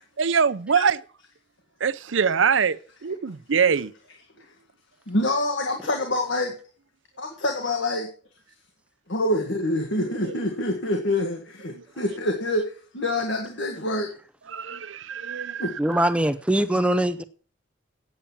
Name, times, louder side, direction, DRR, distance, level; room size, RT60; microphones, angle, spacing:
voice 1, 0.2-1.0 1.8-3.9 10.2-10.3 11.8-11.9 14.5-15.7, right 6 dB, 75° right, 0.6 m, -23 dB
voice 2, 5.1-6.5 7.2-8.1 9.1-14.1 15.6-15.7, left 1 dB, 70° left, 1.7 m, -26 dB
voice 3, 15.8-17.2, right 1 dB, 5° right, 0.5 m, -22 dB
8.9 x 8.7 x 7.1 m
head